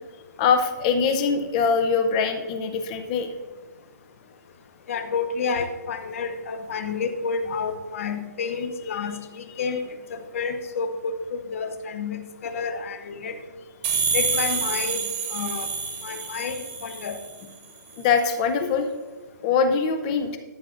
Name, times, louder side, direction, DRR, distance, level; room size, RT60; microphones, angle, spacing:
voice 1, 0.4-3.3 16.0-16.5 18.0-18.9 19.4-20.4, left 5 dB, 20° left, 7 dB, 0.6 m, -23 dB
voice 2, 4.9-9.8 10.1-13.3 14.1-15.0 15.3-15.7 16.0-17.2 18.6-18.7, left 5 dB, 45° left, 8 dB, 0.9 m, -30 dB
sound 1, 13.8-17.4, right 5 dB, 15° right, 0.8 m, -28 dB
13.0 x 7.4 x 2.5 m, 1.3 s
hypercardioid pair, 165°, 10 cm